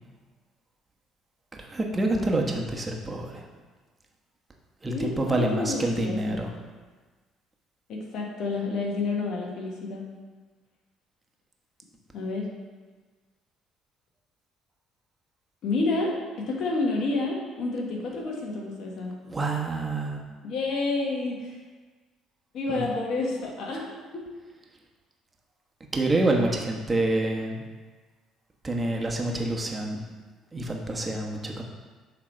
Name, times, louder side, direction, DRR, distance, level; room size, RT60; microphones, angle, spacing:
voice 1, 1.5-3.5 4.8-6.5 19.3-20.2 22.7-22.9 25.9-27.6 28.6-30.1 30.5-31.6, right 2 dB, 25° right, 0 dB, 1.2 m, -27 dB
voice 2, 4.9-6.2 7.9-10.1 12.1-12.5 15.6-19.1 20.4-21.6 22.5-24.2, left 3 dB, 65° left, -1 dB, 1.3 m, -29 dB
7.4 x 3.4 x 4.4 m, 1.4 s
hypercardioid pair, 60°, 0 cm